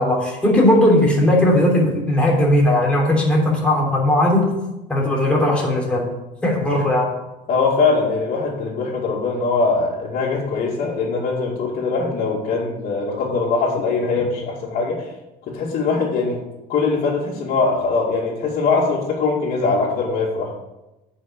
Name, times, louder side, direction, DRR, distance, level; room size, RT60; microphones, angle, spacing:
voice 1, 0.0-4.5 4.9-6.1 6.4-7.1, left 1 dB, 5° left, -3 dB, 3.3 m, -17 dB
voice 2, 7.5-15.1 15.5-16.4 16.7-20.5, left 4 dB, 50° left, -8 dB, 2.5 m, -21 dB
8.6 x 5.7 x 6.8 m, 0.99 s
cardioid pair, 125°, 17 cm